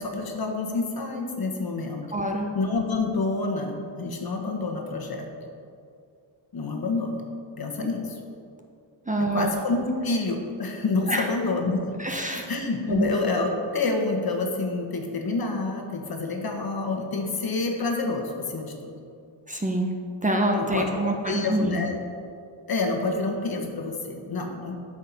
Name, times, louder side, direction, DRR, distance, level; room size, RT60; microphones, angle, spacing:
voice 1, 0.0-2.1 2.5-5.3 6.5-7.2 7.6-8.2 9.2-11.9 12.5-18.9 20.5-22.0 22.7-24.7, left 3 dB, 45° left, 2 dB, 1.5 m, -28 dB
voice 2, 2.1-2.5 7.8-7.9 9.1-9.5 11.1-11.3 12.0-12.5 12.9-13.1 19.5-21.8, right 1 dB, 15° right, 1 dB, 0.9 m, -26 dB
9.0 x 5.3 x 7.3 m, 2.4 s
cardioid pair, 95°, 48 cm